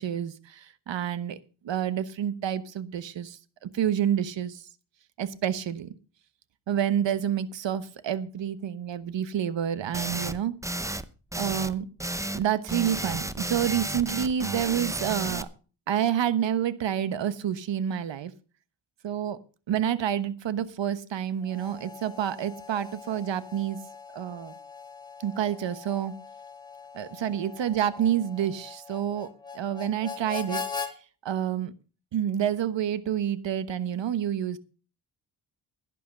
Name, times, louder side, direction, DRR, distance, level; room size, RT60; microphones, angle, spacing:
voice 1, 0.0-1.4 1.6-4.6 5.2-5.9 6.7-10.6 11.3-11.9 12.3-15.5 15.9-18.3 19.0-19.4 19.7-23.8 24.1-24.5 25.2-26.1 26.9-29.3 29.5-30.6 31.2-31.7 32.1-34.6, right 9 dB, 70° right, 14 dB, 1.2 m, -28 dB
sound 1, 9.9-10.4 10.6-11.1 11.3-11.7 12.0-12.4 12.7-15.4, right 1 dB, 5° right, 0.8 m, -32 dB
Harmonica, 21.4-30.9, left 5 dB, 10° left, 1.8 m, -41 dB
11.5 x 10.5 x 5.3 m, 0.36 s
cardioid pair, 80°, 46 cm